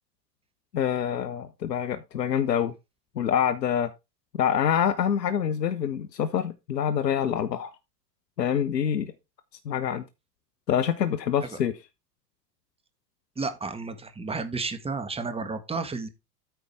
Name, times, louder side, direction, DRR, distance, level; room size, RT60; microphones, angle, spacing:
voice 1, 0.7-2.7 3.2-3.9 4.3-7.7 8.4-9.1 9.6-10.0 10.7-11.7, left 8 dB, 85° left, 0.9 m, -26 dB
voice 2, 13.4-16.1, right 4 dB, 10° right, 1.8 m, -32 dB
9.2 x 5.4 x 4.6 m
figure-of-eight pair, 80°, 49 cm